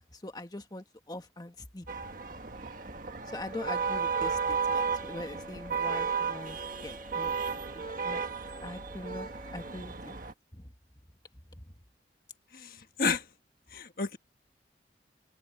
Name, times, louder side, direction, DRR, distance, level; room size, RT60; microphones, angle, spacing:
voice 1, 0.1-1.9 3.3-6.6 6.8-8.2 8.6-10.2 10.5-10.7 11.6-11.7, left 1 dB, 25° left, 1.7 m, -43 dB
sound 1, 1.9-10.3, right 5 dB, 50° right, 1.5 m, -34 dB
Wind instrument woodwind instrument, 3.3-9.8, equal, 5° right, 7.0 m, -49 dB
voice 2, 12.5-13.3 13.7-14.2, left 4 dB, 55° left, 1.4 m, -31 dB
open air
head